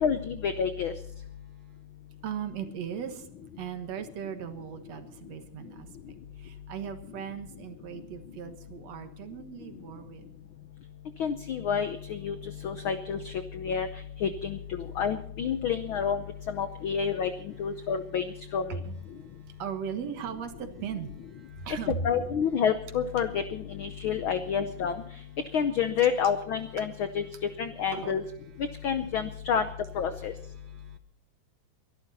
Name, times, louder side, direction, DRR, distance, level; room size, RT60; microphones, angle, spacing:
voice 1, 0.0-0.9 11.2-13.9 14.2-17.3 17.6-18.8 22.0-25.0 25.5-27.3 27.6-28.2 28.8-29.6 29.9-30.3, left 7 dB, 85° left, 10 dB, 1.1 m, -29 dB
voice 2, 2.2-3.3 3.6-5.9 6.4-10.3 18.7-21.9 27.9-28.2 30.6-31.0, right 8 dB, 65° right, 8 dB, 2.4 m, -38 dB
23.0 x 12.0 x 4.1 m, 0.67 s
omnidirectional pair, 3.4 m